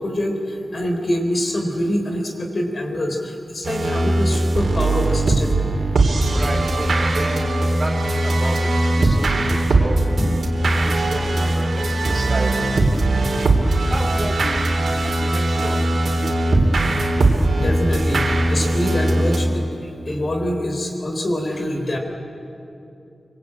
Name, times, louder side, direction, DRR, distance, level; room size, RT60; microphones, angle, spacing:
voice 1, 0.0-5.6 10.2-10.4 17.6-19.7 20.1-22.0, left 1 dB, 45° left, 3 dB, 4.1 m, -25 dB
sound 1, 3.6-19.5, right 2 dB, 70° right, 3.3 m, -20 dB
voice 2, 6.3-10.0 10.8-12.9 13.9-14.8 15.2-15.8 16.2-16.6, right 2 dB, 30° right, 2 dB, 2.6 m, -31 dB
24.5 x 24.5 x 8.8 m, 2.8 s
wide cardioid pair, 105°, 0 cm